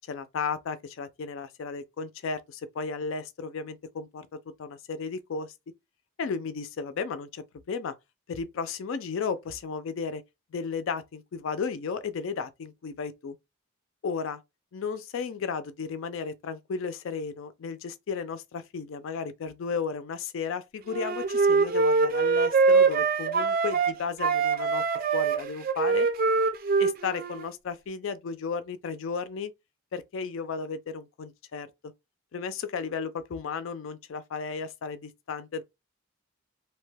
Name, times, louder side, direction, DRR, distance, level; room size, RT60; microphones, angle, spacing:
voice 1, 0.1-4.3 4.6-5.5 6.2-7.9 8.3-10.2 10.5-13.4 14.0-14.4 14.7-24.8 25.1-26.1 26.8-29.5 29.9-31.7 32.3-35.6, left 5 dB, 65° left, 0.4 m, -34 dB
Wind instrument woodwind instrument, 20.9-23.9 24.2-27.5, right 4 dB, 40° right, 0.4 m, -24 dB
2.7 x 2.2 x 3.2 m
head